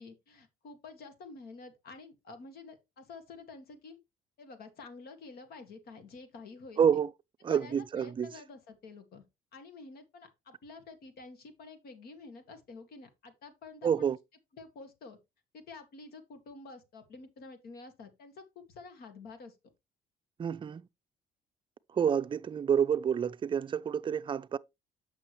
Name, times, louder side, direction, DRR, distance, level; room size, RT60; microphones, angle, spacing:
voice 1, 0.0-4.0 4.4-7.0 7.5-9.2 9.5-14.1 14.5-15.2 15.5-19.6, left 3 dB, 65° left, 2.0 m, -49 dB
voice 2, 6.8-7.1 7.4-8.3 13.8-14.2 20.4-20.9 21.9-24.6, right 8 dB, 30° right, 0.5 m, -28 dB
8.6 x 6.2 x 3.1 m
cardioid pair, 110°, 17 cm